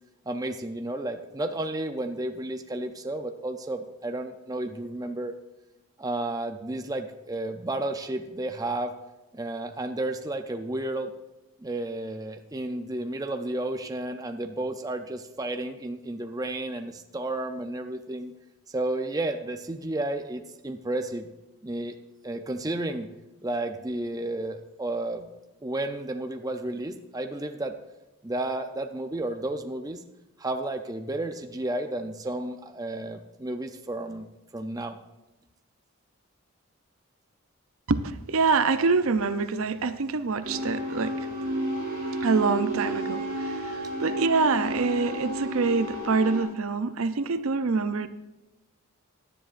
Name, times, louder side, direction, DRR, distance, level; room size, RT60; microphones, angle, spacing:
voice 1, 0.3-5.3 6.0-8.9 9.3-11.1 11.6-18.3 18.7-21.3 21.6-21.9 22.2-23.1 23.4-25.3 25.6-27.7 28.2-30.0 30.4-34.2 34.5-35.0, right 2 dB, 15° right, 6 dB, 0.5 m, -32 dB
voice 2, 37.9-41.3 42.2-48.1, right 4 dB, 70° right, 11 dB, 0.6 m, -25 dB
sound 1, 40.4-46.4, right 1 dB, 40° right, 4.6 m, -32 dB
17.0 x 10.5 x 2.5 m, 0.99 s
head